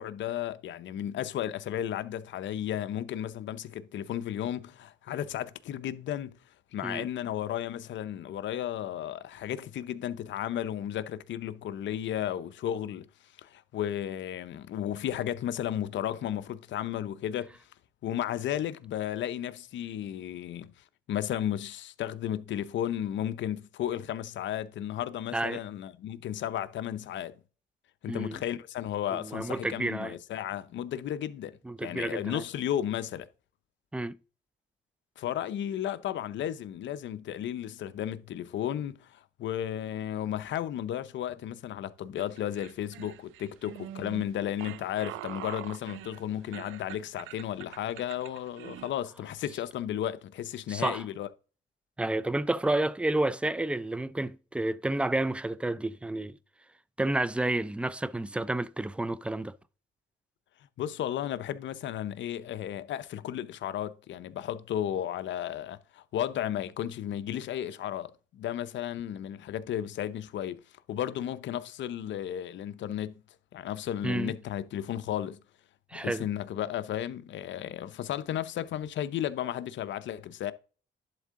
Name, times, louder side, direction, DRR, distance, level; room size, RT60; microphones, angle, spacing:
voice 1, 0.0-6.4 6.7-13.1 13.4-17.6 18.0-20.7 21.1-27.4 28.0-33.3 35.2-51.3 60.8-70.6 70.9-73.1 73.5-75.4 75.9-80.5, left 11 dB, 70° left, 0.6 m, -34 dB
voice 2, 28.1-28.4 29.1-30.2 31.6-32.4 33.9-34.2 50.7-51.0 52.0-56.4 57.0-59.6 74.0-74.3 75.9-76.3, right 2 dB, 5° right, 0.4 m, -30 dB
sound 1, 42.2-48.9, right 14 dB, 85° right, 0.4 m, -44 dB
11.0 x 3.7 x 3.7 m
cardioid pair, 90°, 20 cm